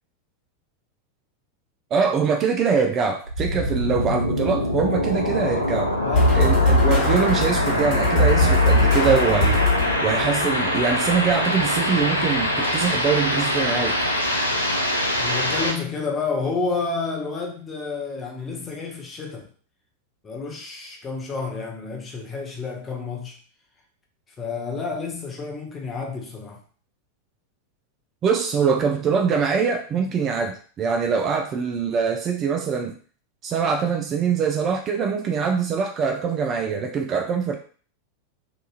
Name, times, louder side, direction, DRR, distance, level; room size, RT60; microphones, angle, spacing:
voice 1, 1.9-5.9 6.3-9.7 10.0-14.0 28.2-33.0 33.4-37.6, right 6 dB, 30° right, 3 dB, 0.4 m, -23 dB
sound 1, 3.3-15.7, left 1 dB, 85° left, 0.4 m, -24 dB
voice 2, 6.0-6.4 15.2-19.5 20.2-23.4 24.4-26.6, left 4 dB, 20° left, 0 dB, 0.6 m, -30 dB
sound 2, 6.1-10.3, left 2 dB, 40° left, 1.1 m, -20 dB
2.8 x 2.3 x 2.4 m, 0.42 s
figure-of-eight pair, 90°, 0 cm